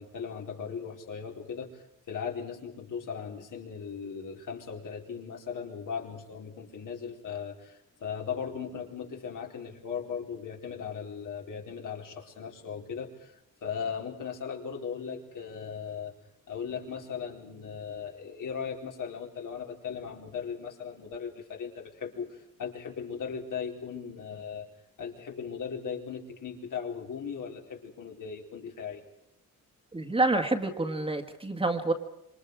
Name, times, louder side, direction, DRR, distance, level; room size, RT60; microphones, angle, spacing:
voice 1, 0.0-16.1 16.5-24.7 25.0-29.0, left 6 dB, 70° left, 1 dB, 4.5 m, -38 dB
voice 2, 29.9-31.9, right 2 dB, 15° right, 5 dB, 2.0 m, -27 dB
27.0 x 26.0 x 4.9 m, 0.81 s
wide cardioid pair, 165°, 33 cm